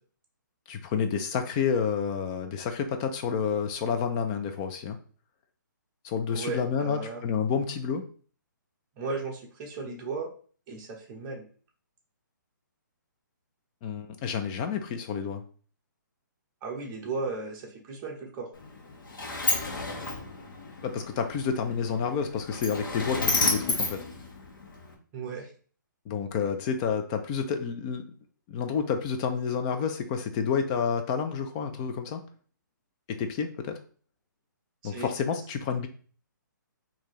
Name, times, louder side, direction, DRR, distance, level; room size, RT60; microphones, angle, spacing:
voice 1, 0.7-5.0 6.0-8.0 13.8-15.4 20.8-24.0 26.1-28.0 28.5-32.2 33.1-33.8 34.8-35.9, left 6 dB, 20° left, 7 dB, 0.4 m, -29 dB
voice 2, 6.3-7.2 9.0-10.3 10.7-11.4 16.6-18.5 25.1-25.5 34.8-35.1, right 3 dB, 20° right, -1 dB, 0.9 m, -35 dB
Sliding door, 18.5-24.9, left 3 dB, 80° left, 1.3 m, -31 dB
4.6 x 2.8 x 3.0 m, 0.42 s
hypercardioid pair, 160°, 11 cm